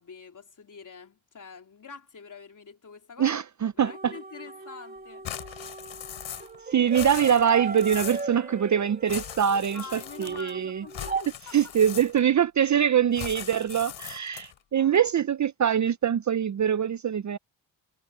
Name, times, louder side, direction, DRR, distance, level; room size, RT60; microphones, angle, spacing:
voice 1, 0.0-5.5 9.7-11.7 14.7-15.0, left 6 dB, 40° left, 3.6 m, -46 dB
voice 2, 3.2-4.1 6.7-10.8 11.5-17.4, right 8 dB, 40° right, 0.6 m, -24 dB
sound 1, 3.8-11.2, right 4 dB, 20° right, 2.5 m, -38 dB
sound 2, 5.2-6.6 6.8-8.3 9.1-10.5 10.9-12.4 13.1-14.6, left 10 dB, 80° left, 3.8 m, -39 dB
cardioid pair, 95°, 46 cm